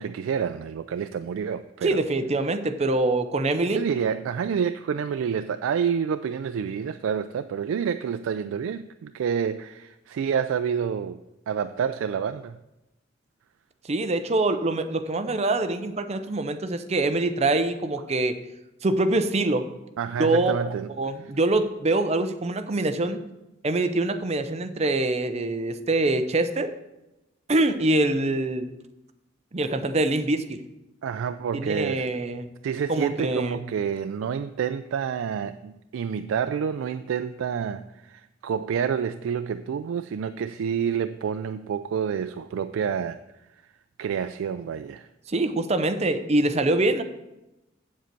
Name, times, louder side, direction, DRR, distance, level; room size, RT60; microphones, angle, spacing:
voice 1, 0.0-2.0 3.7-11.2 11.5-12.6 20.0-20.9 31.0-32.2 32.6-43.2 44.0-45.1, right 7 dB, 85° right, 0.3 m, -28 dB
voice 2, 1.8-3.8 13.9-18.4 18.8-19.7 20.2-20.7 21.0-23.2 23.6-26.7 27.5-28.7 29.5-30.6 31.5-32.5 32.9-33.6 45.3-47.0, right 2 dB, 35° right, 0.6 m, -24 dB
8.1 x 7.4 x 4.5 m
head